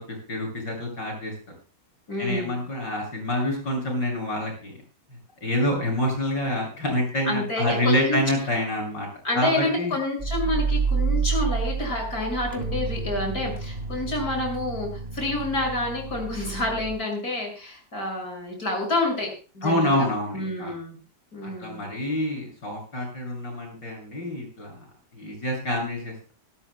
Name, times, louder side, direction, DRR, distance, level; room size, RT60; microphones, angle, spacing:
voice 1, 0.1-1.3 2.2-4.8 5.4-9.1 9.3-10.0 19.6-20.7 21.4-24.8 25.1-26.1, left 1 dB, 80° left, 1 dB, 7.9 m, -27 dB
voice 2, 2.1-2.6 7.2-8.2 9.2-14.9 15.1-20.1 20.3-21.0 21.3-21.9, left 2 dB, 55° left, 2 dB, 6.8 m, -28 dB
sound 1, 10.2-17.0, right 4 dB, 25° right, 2.4 m, -29 dB
25.0 x 13.0 x 2.2 m, 0.35 s
omnidirectional pair, 1.9 m